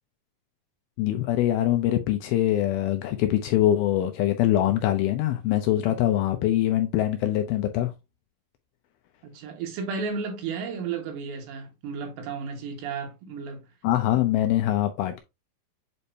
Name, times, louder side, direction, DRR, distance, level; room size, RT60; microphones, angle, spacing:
voice 1, 1.0-7.9 13.8-15.2, left 13 dB, 80° left, 2.2 m, -23 dB
voice 2, 9.2-13.7, right 5 dB, 85° right, 3.6 m, -33 dB
8.5 x 4.3 x 2.7 m
omnidirectional pair, 4.9 m